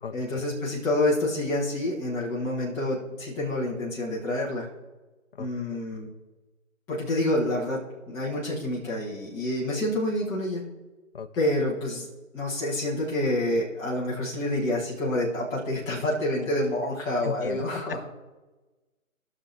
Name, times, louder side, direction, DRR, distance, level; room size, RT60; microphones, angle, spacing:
voice 1, 0.1-4.7 5.4-6.1 6.9-10.6 11.4-12.1 12.3-18.0, left 1 dB, 5° left, -7 dB, 0.7 m, -28 dB
voice 2, 5.4-5.8 11.1-11.3 17.2-17.8, left 7 dB, 40° left, 12 dB, 0.6 m, -36 dB
18.0 x 6.4 x 3.2 m, 1.2 s
figure-of-eight pair, 145°, 42 cm